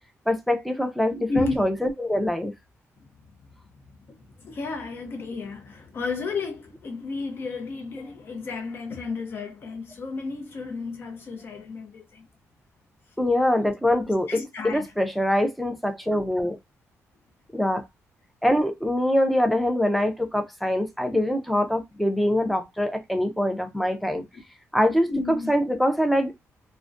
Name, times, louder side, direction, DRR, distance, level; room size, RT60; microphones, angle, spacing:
voice 1, 0.3-2.5 13.2-16.6 17.5-17.8 18.4-24.2 24.7-26.3, left 1 dB, ahead, 0.4 m, -24 dB
voice 2, 1.3-1.6 4.1-12.2 14.3-14.9 25.1-25.5, left 4 dB, 45° left, 0.6 m, -32 dB
2.3 x 2.1 x 2.5 m
cardioid pair, 135°, 5 cm